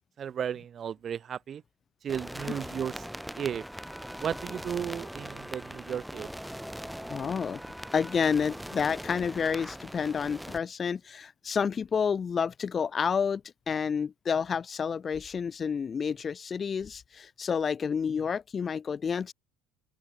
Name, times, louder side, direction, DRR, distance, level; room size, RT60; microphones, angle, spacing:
voice 1, 0.2-1.6 2.0-2.9 3.4-3.6 4.2-6.3, right 8 dB, 40° right, 0.7 m, -34 dB
sound 1, 2.1-10.6, equal, ahead, 2.9 m, -41 dB
voice 2, 7.1-7.6 7.9-19.3, left 6 dB, 35° left, 0.4 m, -29 dB
open air
figure-of-eight pair, 60°, 0 cm